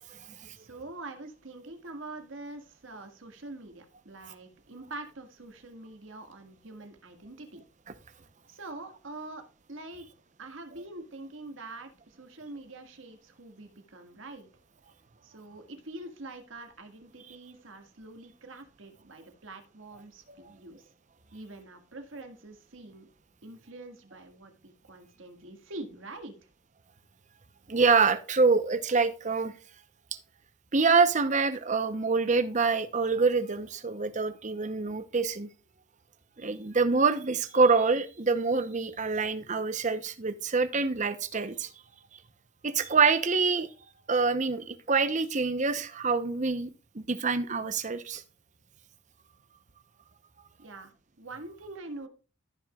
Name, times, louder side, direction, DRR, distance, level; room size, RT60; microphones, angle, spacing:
voice 1, 0.6-7.6 8.5-10.1 10.4-14.5 15.2-20.8 21.3-23.1 23.4-26.3 50.6-50.9 51.2-52.1, right 2 dB, 75° right, 1.9 m, -45 dB
voice 2, 27.7-29.5 30.7-35.5 36.4-41.7 42.6-43.7 44.1-46.7 46.9-48.2, right 4 dB, 35° right, 0.8 m, -26 dB
14.5 x 6.2 x 2.4 m
head